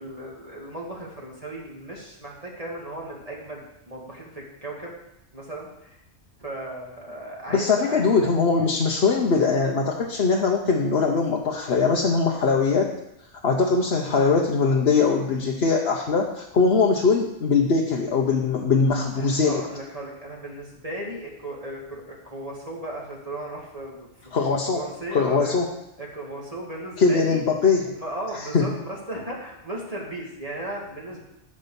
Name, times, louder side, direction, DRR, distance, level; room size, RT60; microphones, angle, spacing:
voice 1, 0.0-4.9 5.3-5.7 6.4-8.3 19.2-24.1 24.7-25.5 26.0-27.4 27.9-31.2, right 1 dB, 30° right, -3 dB, 2.1 m, -36 dB
voice 2, 7.5-12.9 13.4-19.6 24.3-24.8 25.1-25.7 27.0-27.9 28.3-28.7, left 4 dB, 55° left, 0 dB, 1.2 m, -21 dB
13.0 x 5.1 x 7.0 m, 0.84 s
omnidirectional pair, 1.3 m